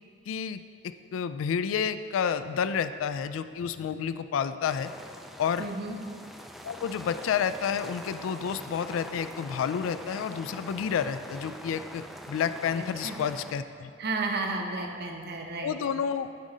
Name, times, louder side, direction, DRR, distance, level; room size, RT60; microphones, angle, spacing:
voice 1, 0.3-4.9 5.4-5.7 6.6-13.9 15.6-16.3, left 7 dB, 85° left, 13 dB, 0.3 m, -30 dB
sound 1, 4.6-13.5, equal, ahead, 0.3 m, -44 dB
voice 2, 5.6-6.0 12.8-13.2 14.0-15.7, right 3 dB, 55° right, 2 dB, 0.8 m, -33 dB
9.2 x 4.9 x 3.8 m, 2.3 s
head